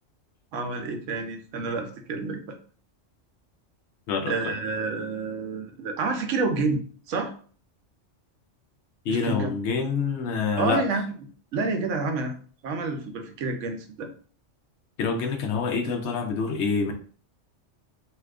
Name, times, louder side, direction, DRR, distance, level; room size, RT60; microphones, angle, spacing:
voice 1, 0.5-2.6 4.3-6.8 7.1-7.3 9.1-9.5 10.6-11.1 11.5-12.4 12.6-14.1, right 3 dB, 85° right, 5 dB, 1.0 m, -29 dB
voice 2, 4.1-4.5 9.1-10.8 15.0-16.9, left 5 dB, 70° left, 4 dB, 0.9 m, -26 dB
2.7 x 2.4 x 3.4 m, 0.44 s
omnidirectional pair, 1.3 m